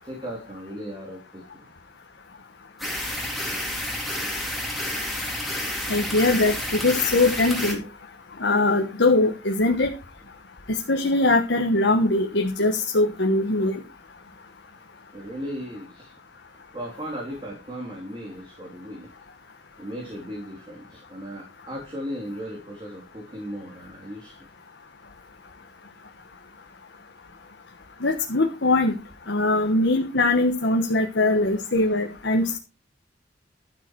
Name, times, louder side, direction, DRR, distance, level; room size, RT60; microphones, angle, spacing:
voice 1, 0.0-1.7 15.1-16.1 16.7-19.1 19.8-24.5, equal, 30° right, -1 dB, 3.3 m, -36 dB
sound 1, 2.8-7.7, left 1 dB, ahead, 3.7 m, -30 dB
voice 2, 5.9-7.8 8.4-9.9 10.7-13.8 28.0-29.0 29.3-32.6, left 2 dB, 85° left, 3 dB, 1.3 m, -21 dB
12.0 x 8.7 x 4.7 m, 0.32 s
head